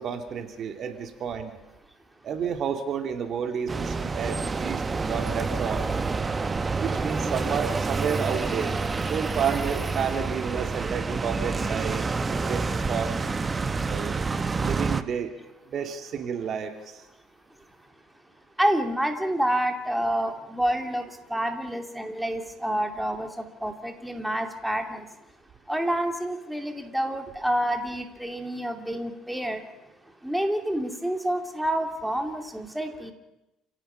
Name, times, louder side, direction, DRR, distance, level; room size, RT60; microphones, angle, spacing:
voice 1, 0.0-1.5 2.2-5.8 6.8-8.7 9.1-12.0 12.3-13.1 13.8-14.2 14.6-15.3 15.7-16.7, right 7 dB, 50° right, 6 dB, 2.5 m, -30 dB
sound 1, 3.7-15.0, right 4 dB, 25° right, 1.1 m, -28 dB
voice 2, 18.6-21.0 21.3-25.0 25.7-29.6 30.2-33.1, right 1 dB, 5° right, 4 dB, 2.6 m, -28 dB
29.5 x 17.0 x 5.8 m, 0.94 s
supercardioid pair, 100°, 0 cm